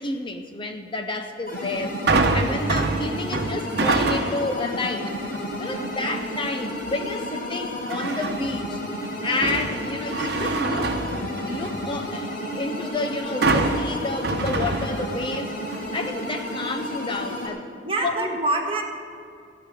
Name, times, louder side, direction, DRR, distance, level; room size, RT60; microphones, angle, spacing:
voice 1, 0.0-5.1 5.6-8.8 9.2-10.9 11.4-17.7 18.0-18.4, left 2 dB, 30° left, 6 dB, 0.6 m, -30 dB
sound 1, 1.5-17.5, left 1 dB, 60° left, 4.0 m, -32 dB
sound 2, 2.1-4.6 5.1-5.5 7.9-8.6 9.0-11.9 13.4-15.4 15.7-15.8, right 3 dB, 65° right, 1.0 m, -25 dB
voice 2, 5.7-6.2 17.8-18.8, right 2 dB, 30° right, 2 dB, 1.7 m, -26 dB
15.0 x 5.9 x 9.5 m, 2.4 s
head